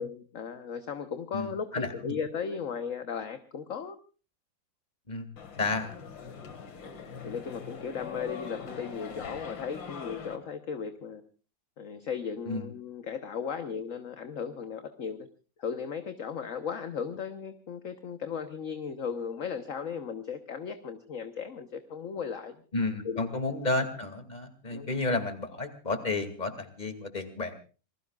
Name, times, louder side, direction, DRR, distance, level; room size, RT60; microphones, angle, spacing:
voice 1, 0.0-4.0 7.2-11.2 11.8-15.3 15.6-22.6 23.0-23.3 24.7-24.9, left 6 dB, 50° left, 8 dB, 1.3 m, -36 dB
voice 2, 1.3-2.2 5.1-5.3 5.6-6.0 12.5-12.7 22.7-27.7, left 2 dB, 20° left, 9 dB, 2.5 m, -32 dB
sound 1, 5.4-10.4, left 6 dB, 80° left, 2.7 m, -42 dB
28.0 x 20.0 x 2.4 m, 0.37 s
omnidirectional pair, 2.0 m